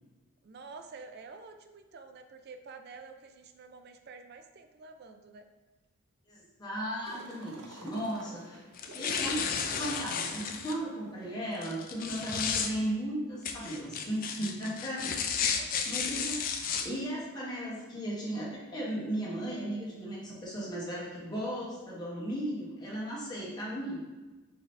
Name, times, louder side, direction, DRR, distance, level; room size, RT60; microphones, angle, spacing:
voice 1, 0.4-5.5 15.6-16.0, right 4 dB, 45° right, 7 dB, 0.4 m, -49 dB
voice 2, 6.3-8.6 8.9-9.5 9.7-15.4 15.8-24.0, right 1 dB, 20° left, -7 dB, 1.1 m, -36 dB
sound 1, 7.0-12.1, right 1 dB, 80° right, 0.8 m, -52 dB
sound 2, 8.7-10.7 11.6-12.7 13.4-16.8, left 6 dB, 40° left, 0.3 m, -33 dB
5.9 x 2.8 x 3.2 m, 1.2 s
head